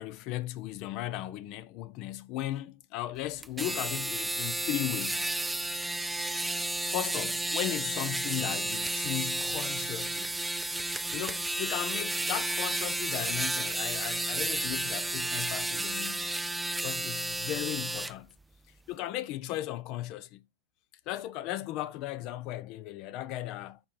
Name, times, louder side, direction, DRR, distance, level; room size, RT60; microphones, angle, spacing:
voice 1, 0.0-5.3 6.9-10.3 11.1-16.3 16.8-18.3 18.9-20.4 21.1-23.8, left 14 dB, 50° left, 0.5 m, -36 dB
sound 1, 3.4-18.1, right 2 dB, 5° right, 0.3 m, -32 dB
5.3 x 4.3 x 5.5 m
hypercardioid pair, 100°, 0 cm